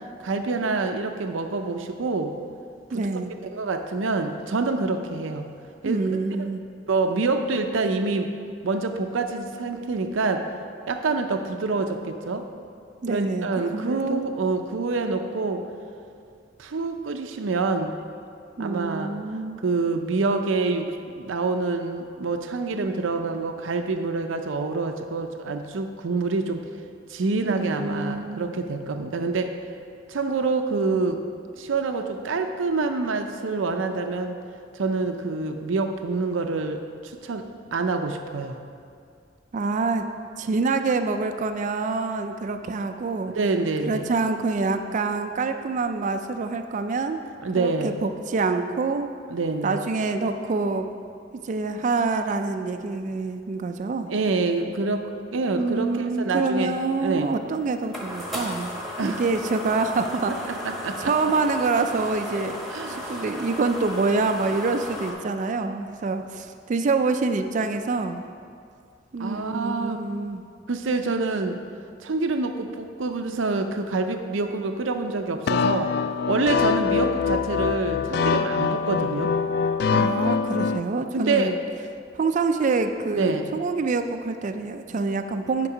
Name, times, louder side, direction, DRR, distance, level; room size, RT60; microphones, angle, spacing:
voice 1, 0.2-2.4 3.5-5.5 5.8-6.0 6.4-6.5 6.9-8.3 8.6-10.5 10.9-12.5 13.1-15.7 16.6-17.9 18.6-19.1 19.6-26.6 27.1-29.6 30.1-31.2 31.5-34.4 34.7-38.6 43.3-44.1 47.4-48.0 49.3-49.8 54.0-55.0 55.3-57.4 59.0-59.2 60.6-61.0 62.7-63.2 69.2-70.0 70.7-71.6 72.0-75.9 76.3-79.3 81.1-81.6 83.1-83.6, right 3 dB, 90° right, 6 dB, 0.6 m, -26 dB
voice 2, 2.9-3.3 5.8-6.6 13.0-14.2 18.6-19.6 27.5-28.5 39.5-40.0 40.4-43.3 43.9-47.2 47.6-49.1 49.6-50.9 51.3-54.1 55.5-58.7 59.0-60.6 61.0-62.6 62.9-68.2 69.1-70.4 79.9-81.6 82.2-85.7, right 3 dB, 40° right, 7 dB, 0.3 m, -26 dB
sound 1, 57.2-65.1, equal, ahead, 1.3 m, -35 dB
sound 2, 75.5-80.8, left 5 dB, 60° left, 0.3 m, -24 dB
9.7 x 5.3 x 4.9 m, 2.3 s
head